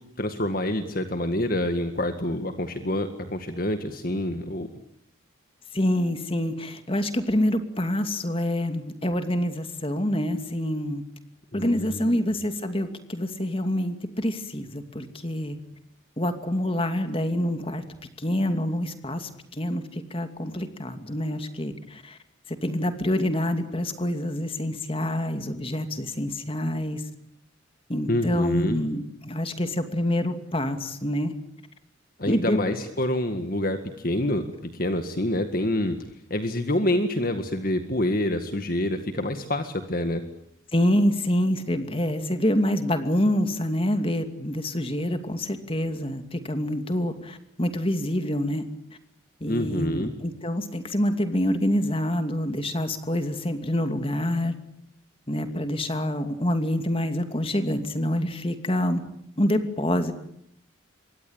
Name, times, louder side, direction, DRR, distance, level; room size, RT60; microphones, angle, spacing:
voice 1, 0.2-4.7 11.5-12.2 28.1-28.8 32.2-36.0 36.3-40.2 49.5-50.1, left 1 dB, 45° left, 7 dB, 1.8 m, -27 dB
voice 2, 5.7-11.0 11.5-15.6 16.2-17.8 18.2-22.2 22.5-27.0 27.9-31.3 32.2-32.6 40.7-48.6 49.4-54.6 55.3-59.0 59.4-60.1, left 1 dB, 25° left, 8 dB, 2.6 m, -26 dB
27.5 x 23.5 x 8.9 m, 0.72 s
head